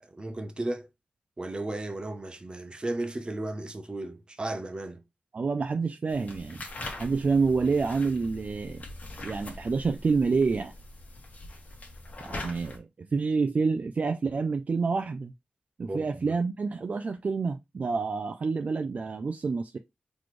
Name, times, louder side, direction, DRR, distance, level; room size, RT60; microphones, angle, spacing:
voice 1, 0.0-0.9 1.4-5.0 15.9-16.3, right 2 dB, 30° right, 0.8 m, -35 dB
voice 2, 5.3-6.6 7.0-8.8 9.2-10.7 12.2-15.3 15.8-19.8, right 4 dB, 50° right, 0.4 m, -28 dB
sound 1, 6.1-12.8, left 2 dB, 55° left, 1.4 m, -42 dB
4.1 x 3.1 x 3.1 m
wide cardioid pair, 90°, 3 cm